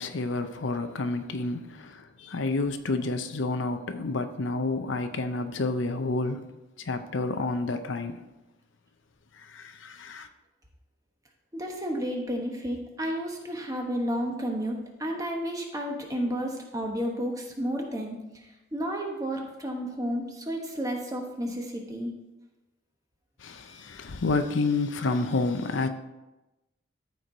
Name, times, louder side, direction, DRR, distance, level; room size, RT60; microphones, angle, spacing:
voice 1, 0.0-6.5 6.8-8.3 9.4-10.3 23.4-25.9, left 3 dB, 75° left, 0.6 m, -29 dB
voice 2, 11.5-18.2 18.7-22.1, equal, 20° right, 1.2 m, -31 dB
13.5 x 4.6 x 3.9 m
head